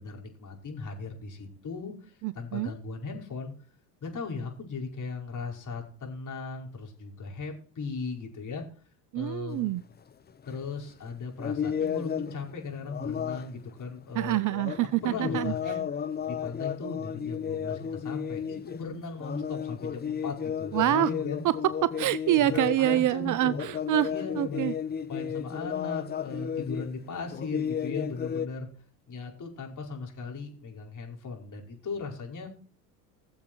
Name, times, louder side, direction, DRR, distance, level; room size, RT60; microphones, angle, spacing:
voice 1, 0.0-3.5 4.0-8.6 9.1-9.7 10.5-14.4 14.8-15.8 16.3-21.4 22.4-23.6 24.0-24.7 25.1-28.7 29.1-32.5, left 4 dB, 40° left, 1 dB, 5.3 m, -37 dB
voice 2, 2.2-2.7 9.1-9.8 14.1-15.5 20.7-21.1 21.4-21.6 21.8-24.1 24.4-24.7, right 14 dB, 40° right, 18 dB, 0.5 m, -26 dB
sound 1, 9.9-10.0 10.3-10.8 11.4-12.5 12.9-13.6 14.5-18.8 19.2-23.1 23.4-26.9 27.3-28.5, left 8 dB, 20° left, 0.7 m, -33 dB
19.5 x 7.4 x 4.5 m, 0.42 s
hypercardioid pair, 80°, 49 cm